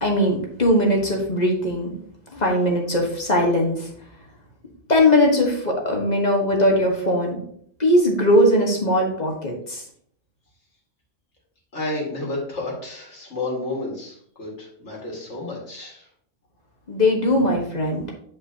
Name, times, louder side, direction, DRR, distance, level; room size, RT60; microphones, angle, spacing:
voice 1, 0.0-2.0 2.3-3.8 4.9-7.4 7.8-9.8 16.9-18.0, left 1 dB, 35° left, 0 dB, 1.4 m, -20 dB
voice 2, 11.7-16.1, left 2 dB, 70° left, -2 dB, 2.3 m, -31 dB
8.7 x 5.2 x 2.8 m, 0.65 s
omnidirectional pair, 1.2 m